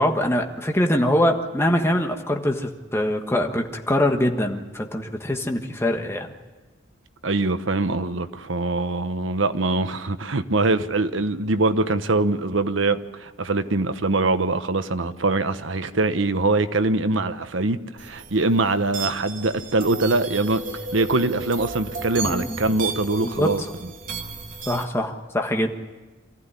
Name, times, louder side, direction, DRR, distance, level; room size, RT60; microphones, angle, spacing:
voice 1, 0.0-6.3 22.2-22.6 23.2-23.6 24.7-25.8, left 1 dB, 15° left, 1.4 m, -23 dB
voice 2, 7.2-20.6 20.9-23.6, right 2 dB, 70° right, 1.0 m, -23 dB
sound 1, 18.0-24.8, right 4 dB, 45° right, 2.0 m, -34 dB
24.0 x 15.0 x 9.9 m
head